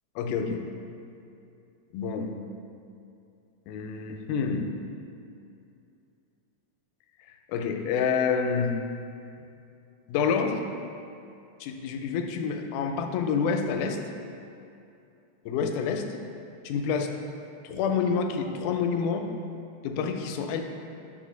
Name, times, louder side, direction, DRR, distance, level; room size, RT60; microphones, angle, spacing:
voice 1, 0.2-0.7 1.9-2.4 3.7-4.7 7.5-8.8 10.1-10.7 11.6-14.0 15.5-16.1 16.7-17.1 17.6-19.3 19.8-20.6, left 6 dB, 90° left, 5 dB, 2.1 m, -28 dB
6.1 x 4.1 x 6.2 m, 2.6 s
omnidirectional pair, 3.5 m